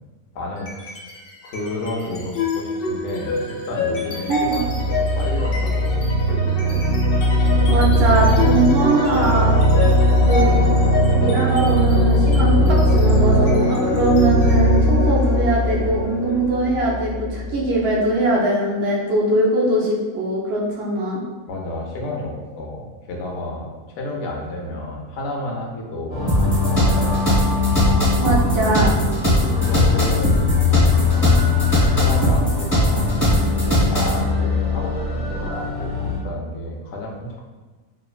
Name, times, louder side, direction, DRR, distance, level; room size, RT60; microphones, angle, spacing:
voice 1, 0.3-1.1 1.4-6.9 10.3-10.7 21.5-27.5 29.2-31.5 31.9-37.4, left 1 dB, 65° left, -1 dB, 0.8 m, -31 dB
sound 1, 0.6-1.1 1.5-18.1, equal, 90° left, 0.5 m, -19 dB
voice 2, 4.3-4.6 7.7-9.6 10.3-10.5 11.2-21.2 28.2-28.9, right 2 dB, 65° right, -4 dB, 0.6 m, -21 dB
sound 2, 26.1-36.2, left 6 dB, 85° right, 1.5 m, -22 dB
sound 3, 26.3-34.2, right 1 dB, 10° left, 0.6 m, -19 dB
3.1 x 2.1 x 2.3 m, 1.3 s
omnidirectional pair, 1.6 m